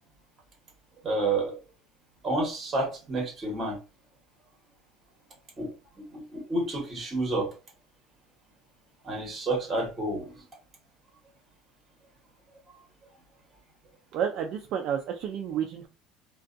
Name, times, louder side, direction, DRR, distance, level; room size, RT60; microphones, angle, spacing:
voice 1, 1.0-1.5 2.2-3.8 5.6-5.7 6.0-7.5 9.0-10.4, right 2 dB, 20° right, -1 dB, 1.1 m, -29 dB
voice 2, 14.1-15.9, right 8 dB, 45° right, 3 dB, 0.3 m, -30 dB
2.5 x 2.2 x 2.5 m, 0.31 s
cardioid pair, 160°, 0 cm